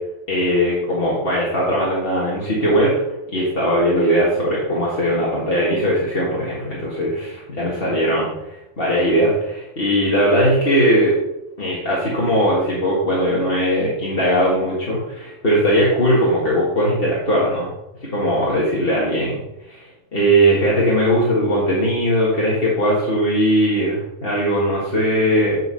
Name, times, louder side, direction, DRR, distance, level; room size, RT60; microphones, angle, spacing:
voice 1, 0.3-2.9 3.3-8.5 8.8-11.1 11.6-17.7 18.0-19.4 19.7-19.8 20.1-25.6, equal, 50° left, -6 dB, 2.0 m, -19 dB
9.4 x 4.7 x 5.6 m, 0.92 s
omnidirectional pair, 1.3 m